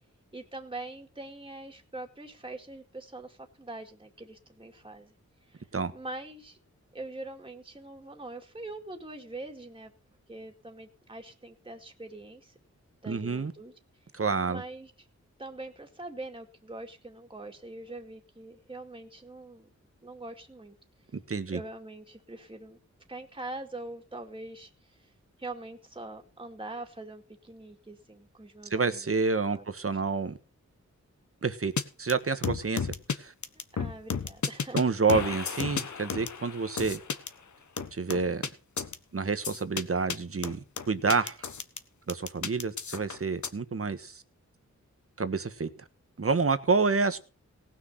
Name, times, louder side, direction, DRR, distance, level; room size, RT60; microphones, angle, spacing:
voice 1, 0.3-5.1 5.5-5.7 5.9-6.6 6.9-9.9 10.3-12.6 13.0-13.7 14.4-15.1 15.4-19.7 20.0-20.8 21.5-22.8 23.1-25.1 25.4-29.1 29.5-29.6 29.9-30.0 33.8-34.8, right 2 dB, 15° right, 2 dB, 2.2 m, -43 dB
voice 2, 13.1-13.5 14.1-14.6 21.1-21.6 28.7-30.4 31.4-31.7 32.0-33.3 34.7-37.0 37.9-38.5 39.1-41.4 42.1-44.2 45.2-45.7 46.2-47.2, right 4 dB, 50° right, 11 dB, 1.4 m, -28 dB
sound 1, 31.8-31.9 32.1-32.2 32.4-33.2 33.4-34.8 35.1-37.3 37.8-38.5 38.8-38.9 39.4-39.8 40.1-40.2 40.4-41.8 42.1-43.5, left 6 dB, 75° left, 1.3 m, -32 dB
18.5 x 6.4 x 5.7 m, 0.36 s
wide cardioid pair, 85°, 30 cm